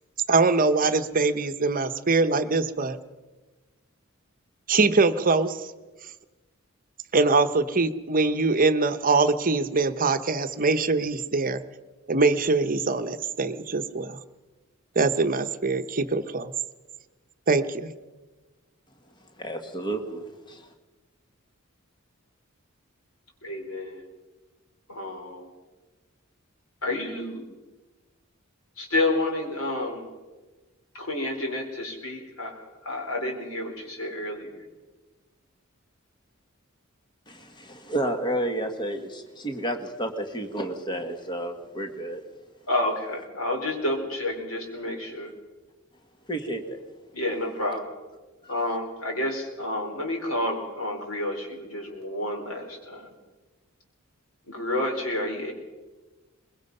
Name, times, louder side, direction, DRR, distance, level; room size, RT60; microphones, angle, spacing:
voice 1, 0.3-3.0 4.7-5.7 7.1-11.6 12.1-14.2 14.9-16.5 17.5-17.9, right 3 dB, 40° right, 10 dB, 0.9 m, -23 dB
voice 2, 19.4-20.7 37.3-42.2 46.3-46.8 48.4-48.5, right 1 dB, 20° left, 5 dB, 1.6 m, -31 dB
voice 3, 23.4-24.0 24.9-25.5 26.8-27.5 28.8-30.1 30.9-34.7 42.7-45.3 47.1-47.8 48.5-53.1 54.5-55.5, left 1 dB, 85° left, 2 dB, 4.3 m, -30 dB
22.5 x 21.0 x 5.5 m, 1.2 s
head